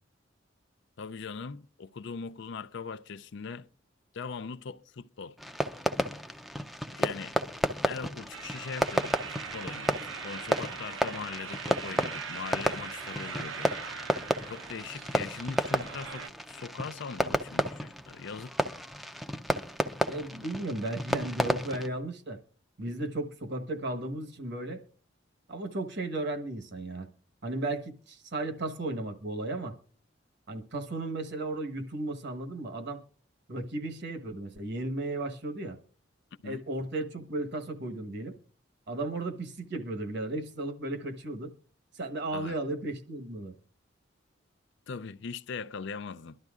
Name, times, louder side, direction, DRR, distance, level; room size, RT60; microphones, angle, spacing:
voice 1, 1.0-3.7 4.1-5.4 7.0-7.4 7.9-13.7 14.5-18.5 36.4-36.6 42.3-42.6 44.9-46.4, left 5 dB, 65° left, 0.5 m, -40 dB
Fireworks, 5.4-21.9, equal, ahead, 0.5 m, -32 dB
sound 1, 8.3-16.3, right 6 dB, 85° right, 0.9 m, -41 dB
voice 2, 20.1-22.4 22.8-24.8 25.5-27.1 27.4-29.7 30.5-33.0 33.5-35.8 36.4-38.3 38.9-41.5 41.9-43.5, right 2 dB, 60° right, 1.3 m, -35 dB
23.0 x 12.0 x 2.4 m
head